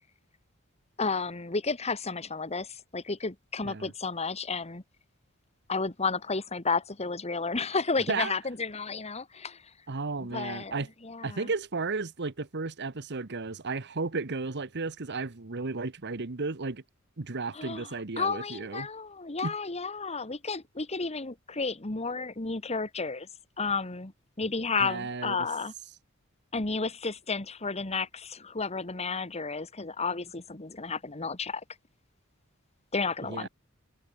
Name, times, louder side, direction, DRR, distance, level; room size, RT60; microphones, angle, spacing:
voice 1, 1.0-4.8 5.7-9.6 10.2-10.8 11.0-11.5 17.5-23.3 23.6-24.1 24.4-25.7 26.5-31.6 32.9-33.5, left 4 dB, 30° left, 1.6 m, -32 dB
voice 2, 9.9-10.9 11.2-16.8 17.2-18.9 19.4-19.5 24.8-25.4 33.2-33.5, right 3 dB, 55° right, 1.1 m, -34 dB
head